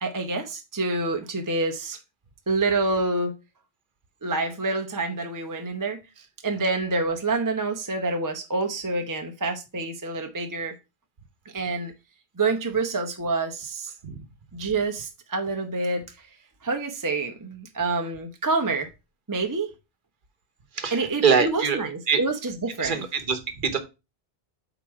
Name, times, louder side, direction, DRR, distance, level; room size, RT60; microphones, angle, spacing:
voice 1, 0.0-2.0 2.5-3.3 4.2-10.8 11.5-11.9 12.4-13.9 14.5-16.3 16.6-18.9 19.3-19.7 20.9-23.0, right 3 dB, 20° right, 0.7 m, -27 dB
voice 2, 20.8-21.8 22.1-22.2 22.8-23.8, right 6 dB, 55° right, 1.1 m, -24 dB
8.5 x 3.0 x 4.6 m
omnidirectional pair, 1.1 m